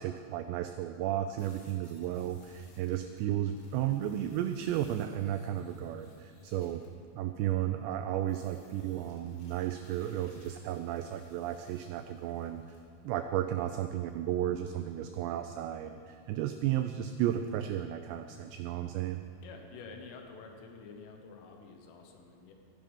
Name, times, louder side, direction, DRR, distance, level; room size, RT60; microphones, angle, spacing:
voice 1, 0.0-6.8 7.1-12.6 13.0-19.2, right 11 dB, 90° right, 8 dB, 2.5 m, -33 dB
sound 1, 1.4-6.9 8.3-12.8, left 2 dB, 65° left, 4.2 m, -61 dB
voice 2, 19.4-22.5, left 4 dB, 85° left, 3 dB, 3.7 m, -49 dB
15.5 x 10.5 x 5.4 m, 2.5 s
omnidirectional pair, 5.6 m